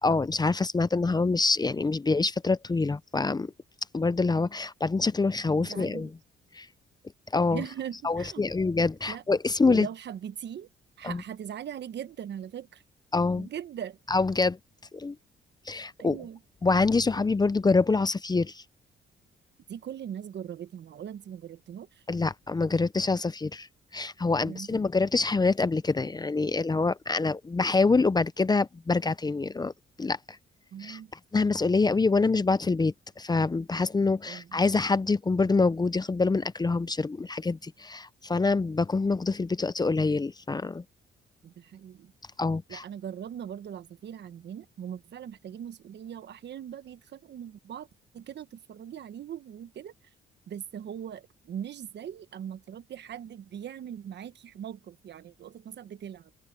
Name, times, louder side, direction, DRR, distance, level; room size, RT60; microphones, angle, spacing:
voice 1, 0.0-3.5 3.9-6.1 6.5-6.7 7.3-7.6 8.0-9.9 11.0-11.2 13.1-13.5 14.1-14.6 14.9-15.1 15.7-16.2 16.6-18.6 22.1-23.7 23.9-29.7 30.0-30.2 30.8-31.0 31.3-40.8 42.4-42.8, left 3 dB, 20° left, 0.7 m, -25 dB
voice 2, 5.6-6.1 7.5-8.5 8.8-9.2 9.6-10.7 11.0-12.8 13.4-14.0 16.0-16.4 19.7-22.0 24.4-24.8 30.7-31.1 34.3-34.6 41.4-42.1 42.7-47.9 48.1-49.9 50.5-56.3, right 9 dB, 60° right, 1.3 m, -40 dB
open air
cardioid pair, 90°, 20 cm